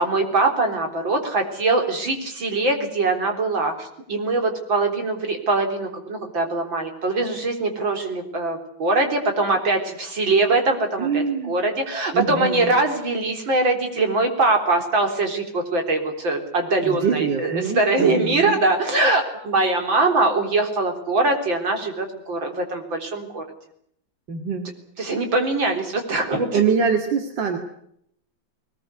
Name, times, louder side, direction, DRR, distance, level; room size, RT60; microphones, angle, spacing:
voice 1, 0.0-23.4 25.0-26.6, right 2 dB, 85° right, 4 dB, 4.6 m, -22 dB
voice 2, 11.0-11.5 12.1-12.7 16.8-18.6 24.3-24.7 26.5-27.6, right 6 dB, 70° right, 4 dB, 2.7 m, -24 dB
21.0 x 20.5 x 9.7 m, 0.72 s
omnidirectional pair, 2.1 m